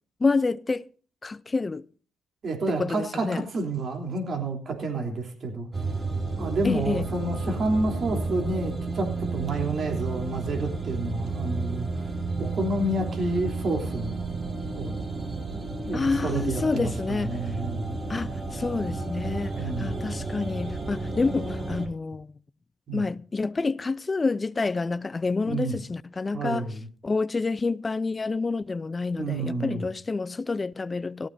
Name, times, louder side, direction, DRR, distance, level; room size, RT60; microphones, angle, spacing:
voice 1, 0.2-0.9 1.2-1.9 2.7-3.5 6.6-7.1 15.9-17.4 18.1-22.3 22.9-26.7 27.0-31.3, left 3 dB, 25° left, 0.5 m, -28 dB
voice 2, 2.4-5.7 6.4-12.1 12.4-14.2 14.8-15.0 15.5-18.0 19.6-19.9 22.9-23.0 25.5-25.7 26.3-26.9 29.2-29.9, right 2 dB, 50° right, 3.4 m, -30 dB
sound 1, 5.7-21.9, right 3 dB, 25° right, 3.3 m, -32 dB
18.5 x 14.0 x 2.7 m
cardioid pair, 90°, 0 cm